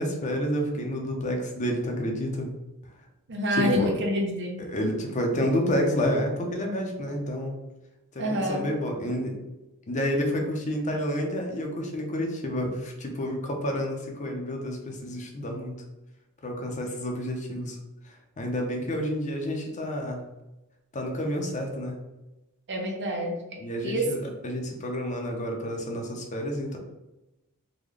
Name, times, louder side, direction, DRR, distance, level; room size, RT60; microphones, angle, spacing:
voice 1, 0.0-2.5 3.5-3.9 4.7-7.5 8.1-9.4 9.9-15.8 16.4-17.8 18.4-20.3 20.9-22.0 23.6-26.8, equal, 35° left, 2 dB, 0.6 m, -29 dB
voice 2, 3.3-4.6 8.2-8.7 22.7-24.3, equal, 55° right, 1 dB, 0.7 m, -28 dB
3.8 x 2.2 x 3.2 m, 0.98 s
head